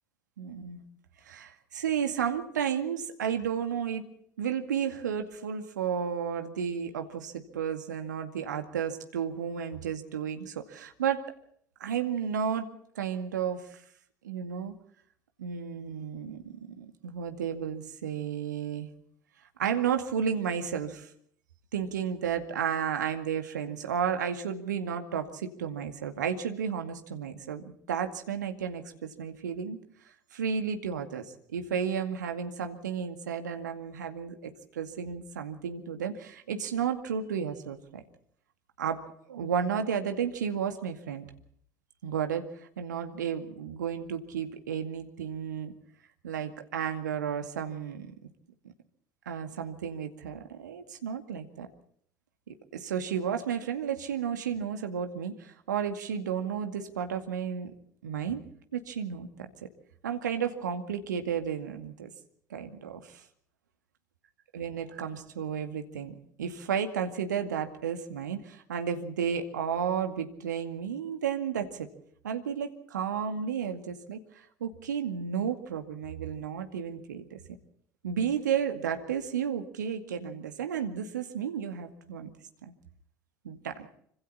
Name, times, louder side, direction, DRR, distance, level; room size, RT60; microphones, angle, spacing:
voice 1, 0.4-0.8 1.3-4.1 4.4-11.3 11.8-12.7 13.0-13.8 14.2-14.7 15.4-18.9 19.6-21.1 21.7-29.8 30.3-38.0 38.8-41.3 42.0-45.7 46.2-48.1 49.3-51.7 52.5-57.7 58.0-58.4 58.7-59.3 60.0-62.1 62.5-63.2 64.5-71.9 72.2-74.2 74.6-77.4 78.0-82.3 82.6-82.7 83.4-83.9, right 7 dB, 70° right, 7 dB, 2.2 m, -32 dB
26.0 x 25.5 x 4.3 m, 0.66 s
figure-of-eight pair, 65°, 10 cm